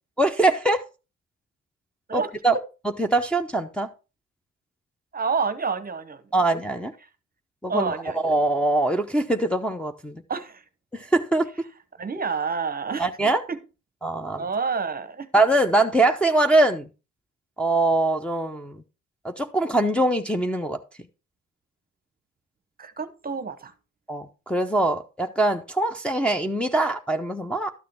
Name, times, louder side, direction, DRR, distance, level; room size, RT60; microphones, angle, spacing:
voice 1, 0.2-0.8 2.1-2.5 3.0-3.9 6.3-6.9 7.6-10.2 10.9-11.5 13.0-13.4 14.0-14.4 15.3-16.9 17.6-18.8 19.2-20.8 24.1-27.7, right 2 dB, 5° left, 0.7 m, -23 dB
voice 2, 5.1-6.4 7.7-8.2 10.3-10.6 12.0-13.1 13.5-13.6 14.4-15.3 22.8-23.7, right 5 dB, 30° right, 0.9 m, -28 dB
12.0 x 6.6 x 3.5 m
cardioid pair, 90°, 30 cm